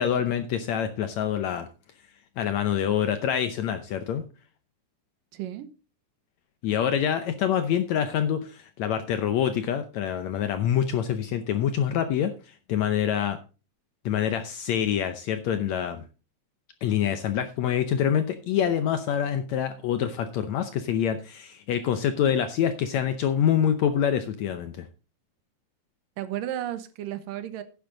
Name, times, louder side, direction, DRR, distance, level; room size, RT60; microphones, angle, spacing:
voice 1, 0.0-1.7 2.4-4.2 6.6-13.4 14.0-16.0 16.8-24.9, left 9 dB, 75° left, 9 dB, 1.7 m, -26 dB
voice 2, 5.3-5.7 26.2-27.6, right 12 dB, 80° right, 12 dB, 2.6 m, -33 dB
10.5 x 10.0 x 3.9 m, 0.33 s
omnidirectional pair, 3.9 m